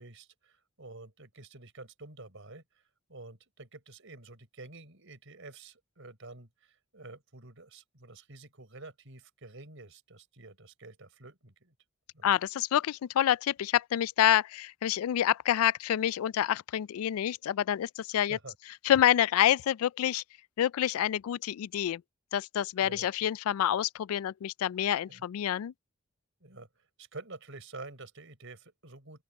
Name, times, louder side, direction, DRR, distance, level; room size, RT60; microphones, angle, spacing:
voice 1, 0.0-11.7 12.1-12.3 18.3-18.6 22.8-23.1 25.1-25.3 26.4-29.2, right 2 dB, 65° right, 4.3 m, -49 dB
voice 2, 12.2-18.4 18.8-20.2 20.6-22.0 22.3-25.7, left 11 dB, 80° left, 0.3 m, -27 dB
open air
head